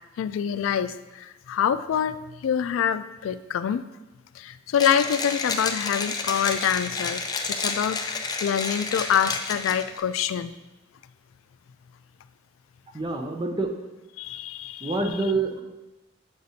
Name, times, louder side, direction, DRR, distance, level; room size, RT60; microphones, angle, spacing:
voice 1, 0.2-3.8 4.4-10.5 14.2-15.0, left 8 dB, 90° left, 13 dB, 0.3 m, -26 dB
Mechanisms, 4.7-10.0, left 4 dB, 20° left, 0.4 m, -30 dB
voice 2, 12.9-13.7 14.8-15.6, right 3 dB, 25° right, 4 dB, 0.6 m, -26 dB
8.0 x 5.0 x 2.7 m, 1.0 s
head